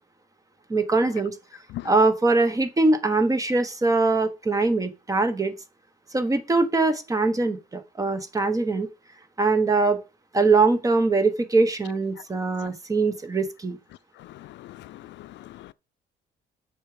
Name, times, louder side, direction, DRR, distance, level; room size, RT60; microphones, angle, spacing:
voice 1, 0.7-1.3 1.8-5.5 6.1-8.9 9.4-10.0 10.3-13.8, right 3 dB, 20° right, 1.1 m, -22 dB
voice 2, 14.2-15.7, left 15 dB, 80° left, 0.4 m, -41 dB
8.5 x 6.3 x 5.0 m
cardioid pair, 150°, 19 cm